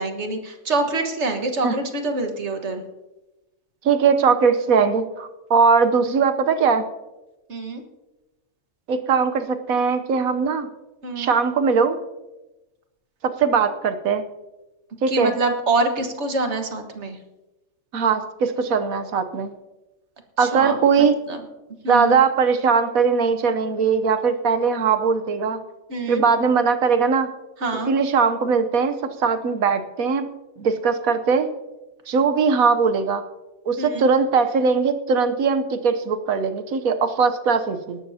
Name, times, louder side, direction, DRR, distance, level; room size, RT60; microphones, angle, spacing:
voice 1, 0.0-2.8 7.5-7.8 11.0-11.3 15.1-17.2 20.4-20.8 21.3-21.4 21.8-22.2 25.9-26.2 27.6-27.9 33.8-34.1, right 3 dB, 55° right, 5 dB, 1.7 m, -25 dB
voice 2, 3.8-6.9 8.9-10.7 11.2-12.0 13.2-14.2 15.0-15.3 17.9-19.5 20.4-21.1 21.9-25.6 26.1-27.3 27.9-30.3 30.6-31.5 32.1-33.2 33.6-38.0, right 5 dB, 80° right, 9 dB, 1.3 m, -20 dB
19.0 x 12.0 x 2.8 m, 1.0 s
omnidirectional pair, 1.5 m